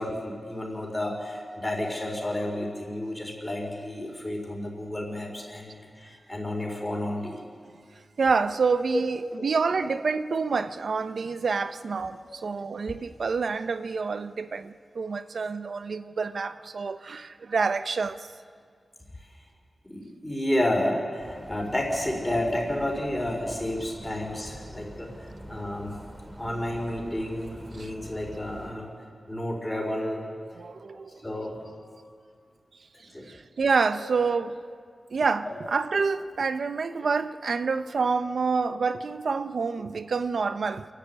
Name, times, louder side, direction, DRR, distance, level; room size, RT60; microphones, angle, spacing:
voice 1, 0.0-7.4 8.9-9.0 9.4-9.5 9.8-9.9 12.2-12.4 19.9-25.1 25.5-25.9 26.4-28.9 29.3-30.2 31.1-32.0 33.1-33.3 33.9-34.0 35.4-35.5, left 1 dB, 15° left, 4.6 m, -31 dB
voice 2, 8.2-18.3 27.8-27.9 30.6-31.2 33.3-34.6 35.1-40.9, right 4 dB, 75° right, 0.7 m, -27 dB
sound 1, 21.2-28.7, equal, 15° right, 2.3 m, -44 dB
27.5 x 12.0 x 8.6 m
wide cardioid pair, 95°, 0 cm